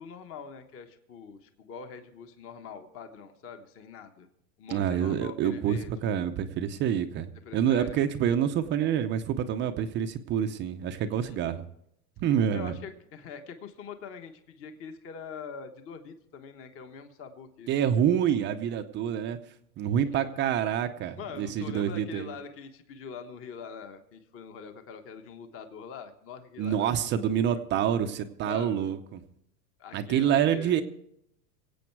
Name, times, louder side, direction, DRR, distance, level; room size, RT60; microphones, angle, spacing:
voice 1, 0.0-4.3 4.6-6.1 7.4-8.0 11.1-11.6 12.5-18.0 21.2-27.6 28.4-28.9 29.8-30.7, left 6 dB, 25° left, 7 dB, 1.3 m, -44 dB
voice 2, 4.7-11.6 12.2-12.7 17.7-19.4 19.8-22.3 26.6-29.2 29.9-30.8, right 9 dB, 25° right, 8 dB, 0.6 m, -27 dB
23.5 x 8.5 x 4.6 m, 0.76 s
supercardioid pair, 135°, 50 cm